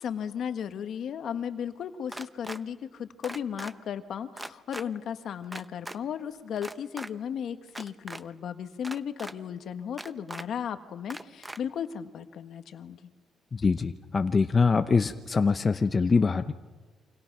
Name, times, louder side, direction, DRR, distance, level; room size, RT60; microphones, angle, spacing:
voice 1, 0.0-13.1, left 8 dB, 65° left, 9 dB, 1.5 m, -35 dB
sound 1, 2.1-2.6 3.2-3.7 4.4-4.8 5.5-6.0 6.6-7.1 7.7-8.2 8.8-9.3 10.0-10.4 11.1-11.6, right 1 dB, 10° right, 0.9 m, -39 dB
voice 2, 13.5-16.5, left 4 dB, 35° left, 9 dB, 0.8 m, -24 dB
28.0 x 26.0 x 6.1 m, 1.3 s
cardioid pair, 90°, 0 cm